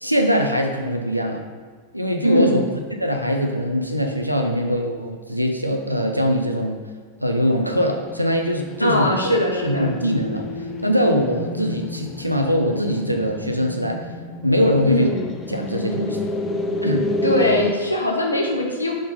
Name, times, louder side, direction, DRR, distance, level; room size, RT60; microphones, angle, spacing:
voice 1, 0.0-1.4 1.9-6.8 7.2-9.1 9.6-14.0 14.4-15.1 15.5-16.3 16.8-17.0, equal, 90° right, 3 dB, 0.7 m, -22 dB
voice 2, 2.2-2.6 8.8-9.9 14.8-15.2 17.2-18.9, left 1 dB, 85° left, 0 dB, 1.0 m, -21 dB
sound 1, 7.5-17.7, left 1 dB, 25° left, 0.5 m, -30 dB
6.0 x 3.9 x 5.2 m, 1.6 s
figure-of-eight pair, 90°, 0 cm